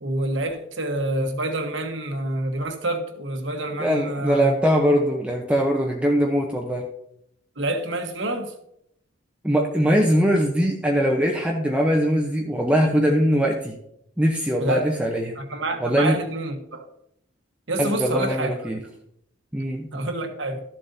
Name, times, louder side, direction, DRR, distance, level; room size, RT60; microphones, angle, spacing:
voice 1, 0.0-4.5 7.6-8.5 14.6-14.9 15.4-16.9 17.7-18.5 19.9-20.6, right 1 dB, 70° right, 1.3 m, -27 dB
voice 2, 3.7-6.8 9.4-13.8 14.2-15.4 15.8-16.2 17.8-18.8 19.5-19.9, equal, 5° right, 0.8 m, -21 dB
13.0 x 7.6 x 2.7 m
head